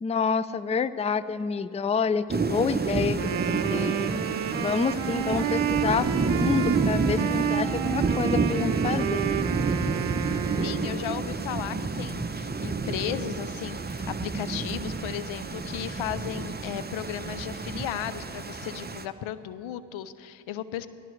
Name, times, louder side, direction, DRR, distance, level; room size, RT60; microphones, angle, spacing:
voice 1, 0.0-4.1 4.6-9.3, left 5 dB, 15° left, 16 dB, 0.4 m, -28 dB
Thunder / Rain, 2.3-19.0, right 4 dB, 20° right, 0.7 m, -29 dB
sound 1, 2.5-7.5, left 3 dB, 55° left, 1.5 m, -49 dB
Wind instrument woodwind instrument, 3.0-11.2, right 10 dB, 70° right, 0.8 m, -31 dB
voice 2, 10.6-20.9, left 11 dB, 85° left, 15 dB, 0.6 m, -35 dB
16.5 x 16.0 x 3.2 m, 2.4 s
supercardioid pair, 45°, 47 cm